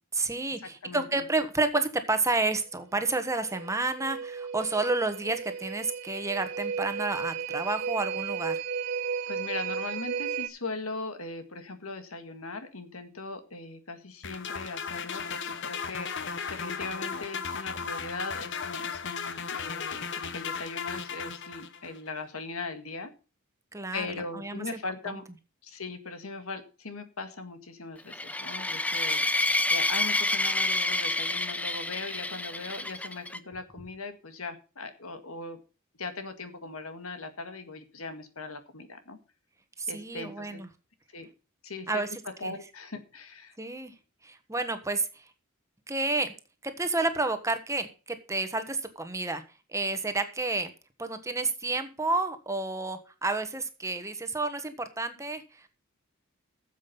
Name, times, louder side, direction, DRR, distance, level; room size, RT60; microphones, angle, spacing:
voice 1, 0.1-8.6 23.7-24.8 25.0-25.2 39.8-40.7 41.9-42.5 43.6-43.9 44.2-45.3 45.9-46.3 46.6-49.4 49.7-50.7 51.0-55.7, right 3 dB, 15° right, 8 dB, 1.4 m, -30 dB
voice 2, 0.8-1.2 9.3-16.1 16.5-23.1 23.9-25.2 25.6-29.2 29.7-35.6 36.0-39.2 39.9-40.6 41.1-41.3 41.6-41.9 42.4-43.6, left 3 dB, 85° left, 9 dB, 1.9 m, -39 dB
sound 1, 3.0-10.5, right 7 dB, 60° right, 1.8 m, -34 dB
sound 2, 14.2-22.0, left 6 dB, 60° left, 1.0 m, -36 dB
sound 3, 28.1-33.4, left 2 dB, 5° left, 0.6 m, -28 dB
13.5 x 7.6 x 5.4 m, 0.33 s
head